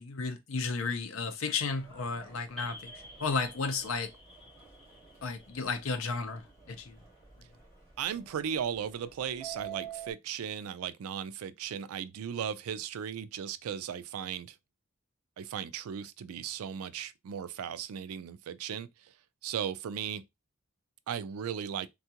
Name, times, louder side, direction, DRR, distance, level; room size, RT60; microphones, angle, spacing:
voice 1, 0.0-2.9 3.2-4.1 5.2-7.0, left 4 dB, 70° left, 0.6 m, -33 dB
Subway metro underground, 1.7-10.1, right 8 dB, 30° left, 2.4 m, -50 dB
sound 1, 2.6-7.0, equal, ahead, 1.1 m, -52 dB
voice 2, 8.0-14.6 15.4-19.1 19.4-20.2 21.1-21.9, right 8 dB, 85° right, 0.3 m, -36 dB
3.6 x 2.3 x 2.8 m
head